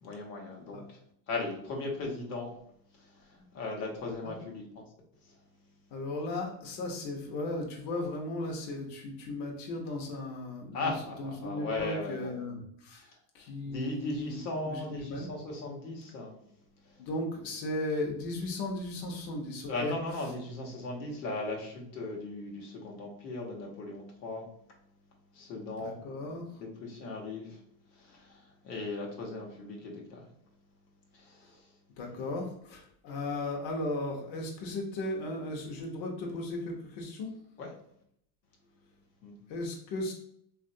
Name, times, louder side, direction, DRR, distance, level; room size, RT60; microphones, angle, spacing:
voice 1, 0.0-1.0 1.3-2.5 3.0-4.6 5.2-5.3 10.7-12.3 13.0-13.1 13.6-16.3 16.9-17.0 19.7-24.5 25.3-26.0 26.6-27.6 28.0-30.3 31.1-31.6 37.6-37.7 39.2-39.4, left 2 dB, 90° left, -1 dB, 1.0 m, -37 dB
voice 2, 5.9-13.1 13.3-15.3 17.0-20.0 25.8-26.5 32.0-37.3 39.5-40.1, left 2 dB, 60° left, 0 dB, 0.8 m, -36 dB
3.0 x 2.4 x 2.6 m, 0.70 s
supercardioid pair, 115°, 49 cm